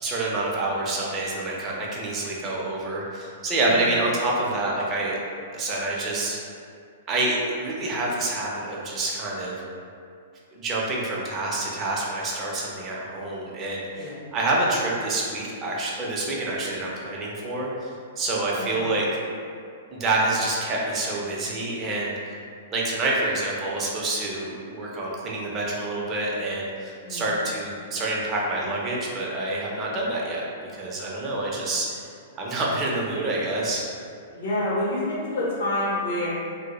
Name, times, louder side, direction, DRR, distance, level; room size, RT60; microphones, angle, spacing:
voice 1, 0.0-5.2 5.5-6.4 7.1-9.6 10.5-19.1 19.9-22.4 22.7-32.1 32.3-33.8, right 2 dB, 25° right, -4 dB, 0.5 m, -27 dB
voice 2, 34.3-36.3, left 1 dB, 65° left, -8 dB, 0.7 m, -27 dB
2.1 x 2.0 x 2.9 m, 2.4 s
hypercardioid pair, 130°, 0 cm